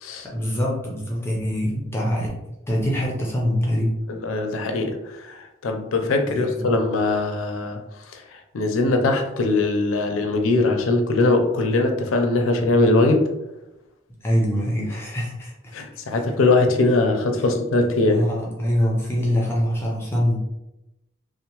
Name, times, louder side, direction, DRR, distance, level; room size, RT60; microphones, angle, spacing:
voice 1, 0.2-2.3 2.7-3.9 6.2-6.7 14.2-15.7 18.0-20.4, equal, 10° left, -3 dB, 0.4 m, -24 dB
voice 2, 4.1-7.8 8.1-13.3 15.7-18.2, left 2 dB, 85° left, 5 dB, 0.4 m, -21 dB
2.7 x 2.0 x 2.8 m, 0.94 s
head